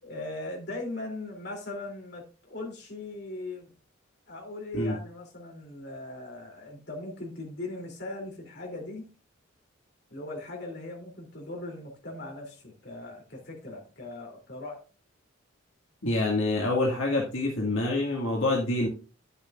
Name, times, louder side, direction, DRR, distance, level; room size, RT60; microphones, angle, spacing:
voice 1, 0.0-3.7 4.3-9.1 10.1-14.8, left 2 dB, 50° left, 1 dB, 3.1 m, -39 dB
voice 2, 16.0-18.9, left 2 dB, 70° left, -3 dB, 2.0 m, -26 dB
10.5 x 7.9 x 2.5 m, 0.34 s
head